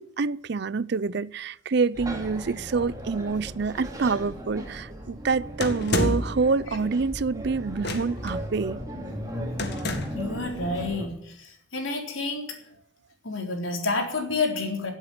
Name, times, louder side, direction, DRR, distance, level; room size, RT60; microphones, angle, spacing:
voice 1, 0.0-8.8, right 4 dB, 55° right, 0.5 m, -27 dB
sound 1, 1.9-11.1, right 1 dB, 15° right, 2.7 m, -37 dB
sound 2, 5.6-6.4 7.8-8.3 9.6-10.3, left 1 dB, 55° left, 2.0 m, -28 dB
voice 2, 10.1-12.6 13.2-14.9, left 3 dB, 80° left, 3.9 m, -29 dB
16.5 x 8.2 x 9.7 m
head